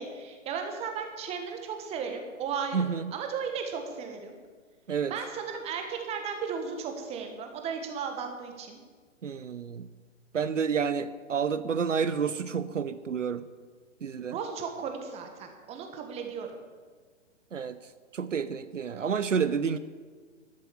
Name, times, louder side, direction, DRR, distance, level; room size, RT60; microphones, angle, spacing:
voice 1, 0.0-4.3 5.1-8.8 14.3-16.6, right 6 dB, 15° right, 4 dB, 1.4 m, -35 dB
voice 2, 2.7-3.1 4.9-5.1 9.2-9.9 10.3-13.5 14.0-14.4 17.5-17.8 18.1-19.8, right 6 dB, 75° right, 13 dB, 0.7 m, -29 dB
12.5 x 7.7 x 7.1 m, 1.5 s
figure-of-eight pair, 120°, 37 cm